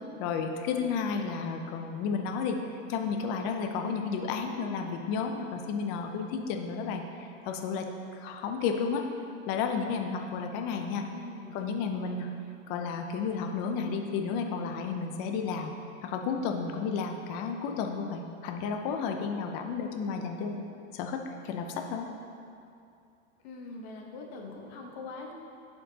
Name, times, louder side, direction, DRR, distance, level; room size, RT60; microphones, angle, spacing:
voice 1, 0.2-7.9 8.1-9.0 9.5-11.0 11.5-12.3 12.7-15.7 16.0-20.6 20.9-21.2 21.4-22.1, left 5 dB, 30° left, 4 dB, 0.4 m, -32 dB
voice 2, 11.1-11.6 23.4-25.3, left 3 dB, 50° left, 0 dB, 1.2 m, -42 dB
11.0 x 4.4 x 2.8 m, 2.5 s
supercardioid pair, 140°, 39 cm